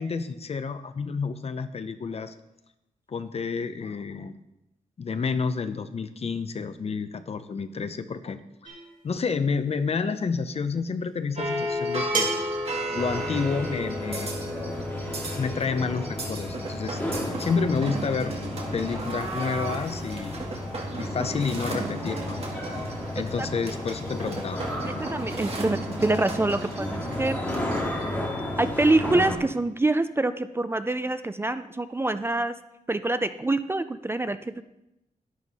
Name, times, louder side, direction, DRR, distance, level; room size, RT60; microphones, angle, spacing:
voice 1, 0.0-2.3 3.1-4.3 5.0-8.7 9.0-12.3 12.9-14.3 15.4-17.0 17.4-18.3 18.7-20.4 21.0-22.4 23.1-24.6, left 5 dB, 45° left, 11 dB, 0.7 m, -29 dB
sound 1, 8.6-9.0 10.5-10.6 12.1-12.6, right 4 dB, 80° right, 3.2 m, -29 dB
sound 2, 11.4-28.0, right 1 dB, 45° right, 2.0 m, -34 dB
sound 3, 13.0-29.4, left 1 dB, 15° left, 2.1 m, -33 dB
voice 2, 23.2-23.5 24.9-27.4 28.6-32.5 32.9-34.6, right 2 dB, 15° right, 11 dB, 0.4 m, -26 dB
11.0 x 11.0 x 4.1 m, 0.89 s
wide cardioid pair, 150°, 14 cm